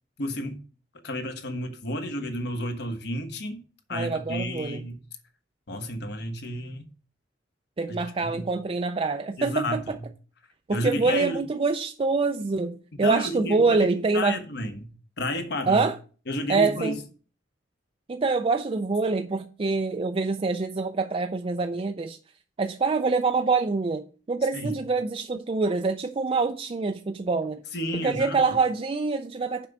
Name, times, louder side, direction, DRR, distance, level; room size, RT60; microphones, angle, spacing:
voice 1, 0.2-0.6 1.0-3.6 3.9-5.0 5.7-6.9 7.9-8.0 8.3-8.5 9.4-9.9 10.7-11.4 13.0-13.9 14.1-14.9 15.2-15.8 16.3-16.9 24.5-24.7 27.7-28.4, left 1 dB, 60° left, 1.2 m, -31 dB
voice 2, 3.9-4.8 7.8-10.0 10.7-14.4 15.7-16.0 16.5-17.0 18.1-22.2 22.6-27.6 27.9-29.7, right 4 dB, 30° right, 0.4 m, -25 dB
7.3 x 5.3 x 5.9 m
head